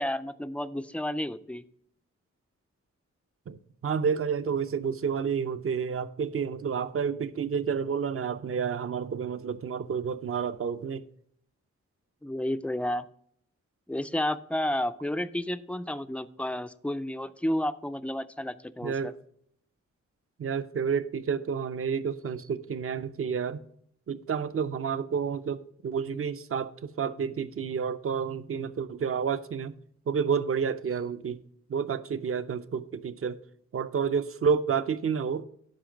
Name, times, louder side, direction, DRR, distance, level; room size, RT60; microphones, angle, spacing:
voice 1, 0.0-1.6 12.2-13.0 13.9-19.1, left 1 dB, 5° left, 0.3 m, -31 dB
voice 2, 3.8-11.0 18.8-19.1 20.4-23.6 24.1-29.7 30.1-31.4 31.7-33.4 33.7-35.4, right 6 dB, 50° right, 0.6 m, -30 dB
12.0 x 5.1 x 5.0 m
wide cardioid pair, 175°, 29 cm